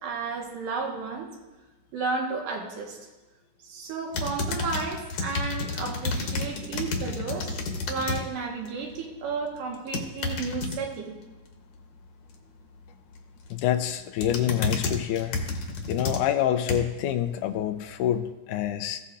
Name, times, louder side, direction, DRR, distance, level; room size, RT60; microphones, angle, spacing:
voice 1, 0.0-1.3 1.9-3.0 3.6-7.5 7.9-11.2, right 4 dB, 80° right, 0 dB, 3.0 m, -32 dB
sound 1, 4.1-8.2 8.6-9.0 9.7-10.8 13.2-13.5 13.9-17.0 17.6-17.7, left 3 dB, 65° left, 2.1 m, -31 dB
voice 2, 13.5-15.4 15.9-19.0, left 11 dB, 80° left, 9 dB, 2.0 m, -27 dB
15.5 x 8.3 x 2.5 m, 1.2 s
omnidirectional pair, 3.7 m